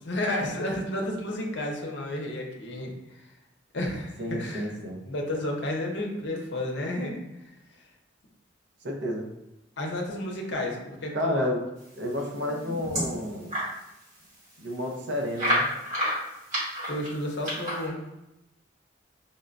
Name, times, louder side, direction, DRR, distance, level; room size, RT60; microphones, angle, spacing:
voice 1, 0.0-2.9 3.7-4.7 5.1-7.2 9.8-11.5 16.9-18.0, left 1 dB, 70° left, 0 dB, 0.7 m, -31 dB
voice 2, 4.2-5.0 8.8-9.3 11.1-11.7 12.0-13.6 14.6-15.7, left 1 dB, 70° right, 1 dB, 0.6 m, -31 dB
sound 1, 12.2-13.7 14.2-14.3 14.5-14.6 15.4-17.9, equal, 45° right, 1.4 m, -29 dB
5.2 x 2.1 x 2.5 m, 0.91 s
head